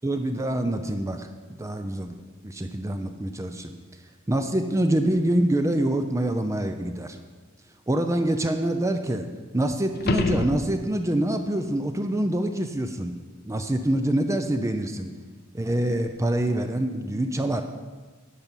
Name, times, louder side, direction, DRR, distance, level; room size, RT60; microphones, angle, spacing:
voice 1, 0.0-2.2 2.4-3.7 4.3-7.2 7.9-9.3 9.5-13.1 13.4-15.1 15.5-17.6, right 1 dB, 15° right, 6 dB, 0.5 m, -25 dB
sound 1, 9.9-11.2 16.1-16.2, left 3 dB, 50° left, 0.7 m, -27 dB
10.5 x 5.3 x 7.4 m, 1.4 s
head